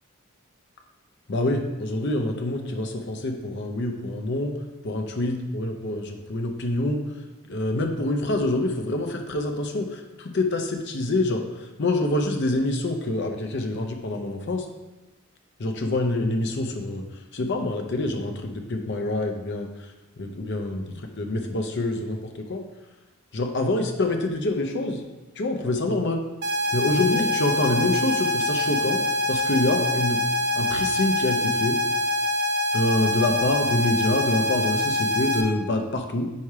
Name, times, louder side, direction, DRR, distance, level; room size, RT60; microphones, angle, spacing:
voice 1, 1.3-4.6 4.8-7.0 7.5-14.7 15.6-17.0 17.3-19.7 20.2-22.6 23.3-25.0 25.4-26.2 26.7-29.0 29.3-30.2 30.5-31.8 32.7-36.3, left 2 dB, 55° left, 4 dB, 0.7 m, -26 dB
sound 1, 26.4-35.4, left 1 dB, 50° right, 0.6 m, -25 dB
4.8 x 4.3 x 4.8 m, 1.1 s
head